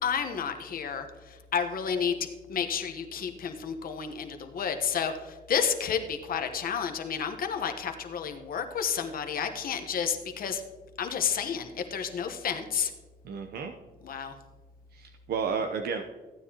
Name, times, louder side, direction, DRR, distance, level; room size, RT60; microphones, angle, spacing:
voice 1, 0.0-10.6 11.0-12.9 14.0-14.3, left 7 dB, 65° left, 6 dB, 1.1 m, -31 dB
voice 2, 13.2-13.7 14.9-16.0, right 5 dB, 80° right, 6 dB, 0.7 m, -32 dB
15.0 x 9.4 x 2.9 m, 1.3 s
cardioid pair, 105°, 16 cm